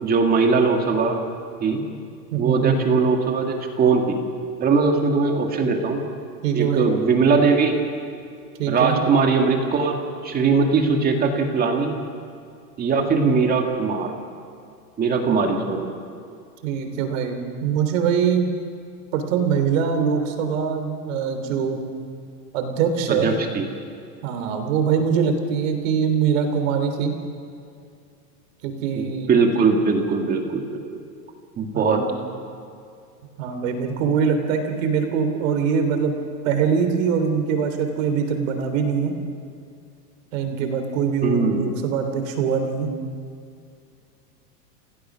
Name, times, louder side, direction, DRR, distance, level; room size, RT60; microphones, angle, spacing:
voice 1, 0.0-1.2 1.6-1.8 2.4-4.2 4.6-6.0 6.5-7.8 8.7-11.9 12.8-14.1 15.0-15.9 23.1-23.7 28.9-31.0 31.6-32.0 41.2-41.6, right 4 dB, 20° right, 3 dB, 2.1 m, -20 dB
voice 2, 2.3-2.8 6.4-6.9 8.6-9.0 16.6-18.5 19.1-21.8 22.5-23.3 24.2-27.1 28.6-29.4 31.7-32.0 33.4-36.1 36.4-39.1 40.3-42.9, right 6 dB, 50° right, 6 dB, 3.4 m, -23 dB
29.5 x 17.5 x 6.3 m, 2.4 s
supercardioid pair, 155°, 49 cm